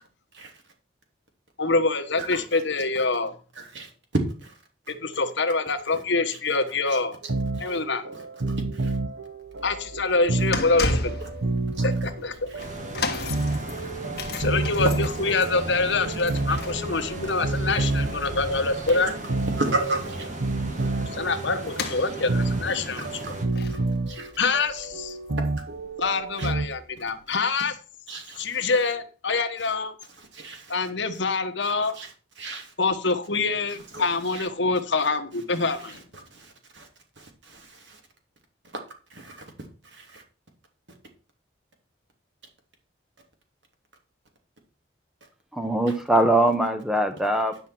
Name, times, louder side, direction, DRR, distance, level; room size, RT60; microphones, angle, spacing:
voice 1, 1.6-3.3 4.9-7.1 7.6-8.0 9.6-11.1 11.8-12.5 14.4-19.1 21.0-23.2 24.4-25.2 26.0-27.7 28.4-29.9 30.7-32.0 32.8-36.0, left 3 dB, 70° left, 7 dB, 1.2 m, -25 dB
voice 2, 3.6-3.9 4.4-4.5 7.6-7.8 8.7-8.9 11.8-11.9 16.5-16.6 17.8-17.9 19.6-20.3 23.2-23.3 23.7-23.8 24.1-24.3 26.4-26.5 27.3-27.4 28.1-28.4 30.3-30.7 31.9-32.1 32.4-32.7 33.9-34.0 34.3-34.5 36.3-36.9 37.2-38.0 39.1-39.4 39.9-40.2, right 2 dB, 70° right, 3 dB, 2.8 m, -33 dB
sound 1, 7.2-26.7, right 2 dB, 85° right, 0.9 m, -30 dB
sound 2, 9.4-25.8 26.0-26.3 27.1-27.2, left 2 dB, 55° left, 1.5 m, -36 dB
sound 3, 12.6-23.5, right 1 dB, 40° right, 2.3 m, -36 dB
voice 3, 45.5-47.6, right 1 dB, ahead, 7 dB, 1.1 m, -22 dB
10.5 x 5.7 x 6.0 m, 0.36 s
head